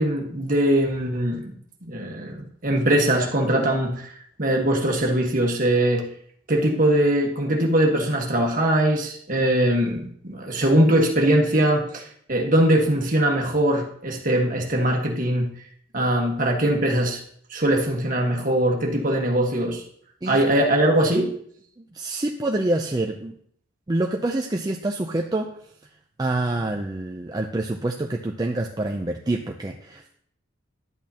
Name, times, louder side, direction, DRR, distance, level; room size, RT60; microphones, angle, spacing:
voice 1, 0.0-6.1 6.5-15.5 15.9-17.2 17.5-19.8 20.2-21.3, right 1 dB, 45° right, 1 dB, 1.5 m, -21 dB
voice 2, 21.8-23.3 23.9-25.5 26.2-30.2, right 2 dB, 20° right, 2 dB, 0.5 m, -26 dB
11.0 x 8.5 x 2.9 m, 0.63 s
head